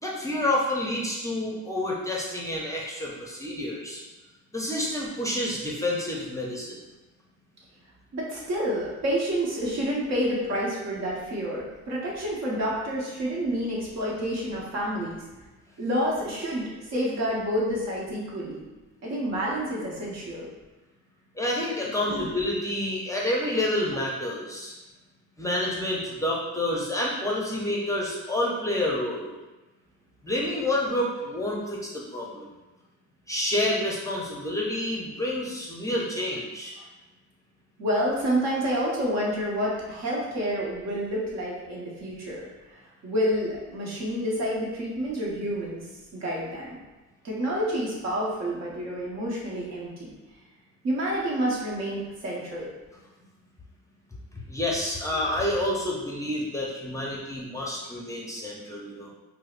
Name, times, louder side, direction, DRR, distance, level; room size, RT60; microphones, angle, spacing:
voice 1, 0.0-4.0 4.5-6.8 21.4-24.7 25.4-29.3 30.2-32.4 33.3-36.7 54.5-59.1, left 1 dB, 10° left, -4 dB, 0.6 m, -28 dB
voice 2, 8.1-15.2 15.8-18.6 19.0-20.5 22.0-22.3 37.8-45.9 46.1-46.8 47.2-50.1 50.8-52.7, equal, 60° right, -4 dB, 1.0 m, -29 dB
4.6 x 2.1 x 2.4 m, 1.1 s
cardioid pair, 90°, 30 cm